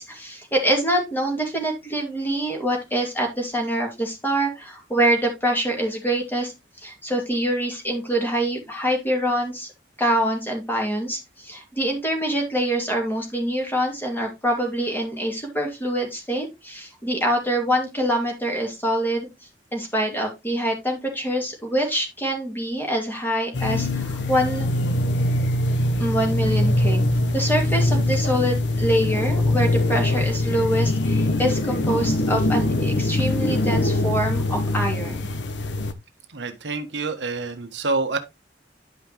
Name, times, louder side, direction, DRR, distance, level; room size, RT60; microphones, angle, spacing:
voice 1, 0.0-6.5 6.8-9.7 10.0-19.3 19.7-24.7 26.0-27.0 27.3-35.3, right 1 dB, 10° left, 2.5 m, -25 dB
sound 1, 23.5-35.9, left 1 dB, 85° left, 0.9 m, -22 dB
voice 2, 36.3-38.2, right 3 dB, 80° right, 1.2 m, -27 dB
11.0 x 5.5 x 3.0 m
head